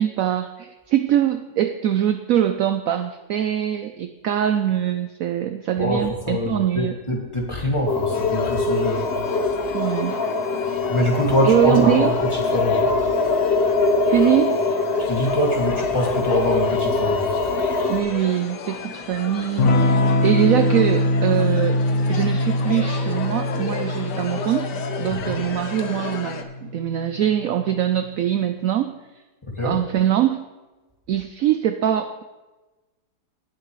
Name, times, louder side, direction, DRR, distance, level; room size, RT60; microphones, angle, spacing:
voice 1, 0.0-7.0 9.7-10.2 10.6-10.7 11.4-12.1 14.1-14.7 17.9-21.8 22.1-24.7 25.0-28.9 29.6-30.4 31.1-32.2, right 10 dB, 70° right, 8 dB, 0.8 m, -22 dB
voice 2, 5.8-9.4 10.9-12.9 15.1-17.3 25.2-25.4 29.6-29.8, left 1 dB, 15° left, -2 dB, 2.1 m, -24 dB
sound 1, 7.9-18.0, left 3 dB, 40° left, 1.2 m, -23 dB
sound 2, 8.1-26.4, left 6 dB, 85° left, 1.5 m, -34 dB
Electric guitar / Strum, 19.6-27.9, left 1 dB, 65° left, 1.4 m, -23 dB
18.0 x 7.4 x 3.1 m, 1.2 s
omnidirectional pair, 1.8 m